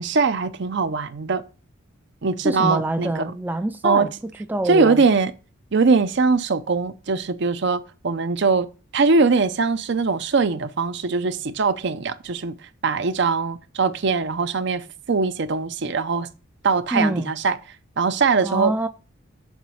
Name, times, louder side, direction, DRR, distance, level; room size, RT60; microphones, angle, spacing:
voice 1, 0.0-1.4 2.2-3.3 3.8-4.1 4.7-5.3 5.7-12.6 12.8-16.3 16.6-17.6 18.0-18.7, right 4 dB, 55° right, 0.6 m, -21 dB
voice 2, 2.4-4.1 4.5-5.0 16.9-17.3 18.4-18.9, right 2 dB, 10° right, 0.3 m, -25 dB
7.3 x 4.0 x 6.2 m
head